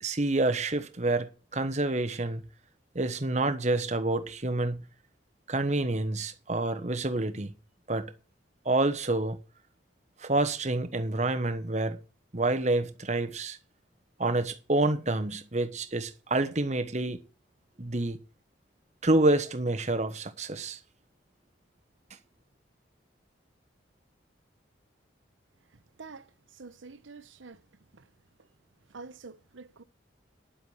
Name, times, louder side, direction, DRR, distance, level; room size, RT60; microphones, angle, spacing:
voice 1, 0.0-2.4 2.9-4.8 5.5-7.5 7.9-8.1 8.6-9.4 10.2-12.0 12.3-13.6 14.2-17.2 17.8-18.2 19.0-20.8, right 2 dB, 35° right, 1.1 m, -28 dB
voice 2, 26.5-27.6 27.9-28.0 28.9-29.8, right 4 dB, 85° right, 0.9 m, -46 dB
10.0 x 7.8 x 7.2 m
head